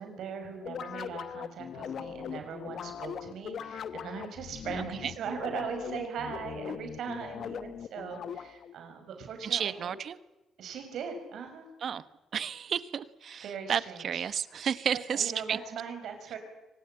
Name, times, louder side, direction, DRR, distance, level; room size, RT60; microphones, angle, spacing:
voice 1, 0.0-9.9 10.6-11.7 13.4-14.2 14.9-16.4, right 6 dB, 75° right, 6 dB, 5.7 m, -39 dB
sound 1, 0.6-8.7, left 8 dB, 60° left, 1.0 m, -40 dB
voice 2, 4.8-5.1 9.4-10.2 11.8-12.0 12.3-15.6, right 8 dB, 55° right, 15 dB, 1.2 m, -32 dB
24.5 x 19.0 x 9.1 m, 1.0 s
cardioid pair, 90°, 0 cm